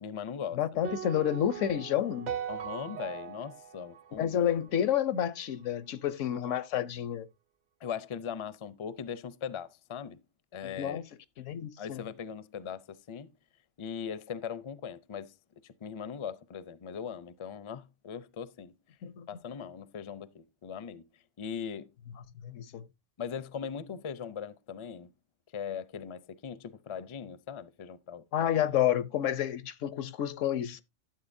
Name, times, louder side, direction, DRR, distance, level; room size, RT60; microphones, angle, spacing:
voice 1, 0.0-0.6 0.9-1.0 2.5-4.4 7.8-10.2 10.5-11.0 11.8-13.3 13.8-15.3 15.6-18.7 19.3-21.0 21.4-21.9 23.2-25.1 25.5-28.5, left 7 dB, 40° left, 0.4 m, -40 dB
voice 2, 0.5-2.4 4.2-7.3 10.6-11.0 11.4-12.0 19.0-19.3 22.4-22.9 28.3-30.8, left 10 dB, 85° left, 1.1 m, -30 dB
sound 1, 0.8-5.1, right 8 dB, 45° right, 0.7 m, -40 dB
12.0 x 7.7 x 2.6 m
omnidirectional pair, 1.2 m